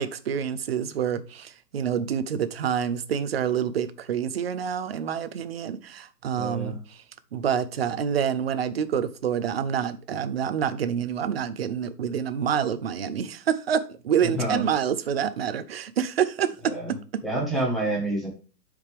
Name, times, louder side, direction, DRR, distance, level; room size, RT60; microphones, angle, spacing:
voice 1, 0.0-7.0 7.3-16.7 17.1-17.2, right 8 dB, 40° right, 0.5 m, -27 dB
voice 2, 6.3-6.8 14.2-14.6 16.7-16.9 17.2-18.3, right 1 dB, ahead, 1.2 m, -28 dB
10.5 x 5.0 x 3.3 m
hypercardioid pair, 165°, 50 cm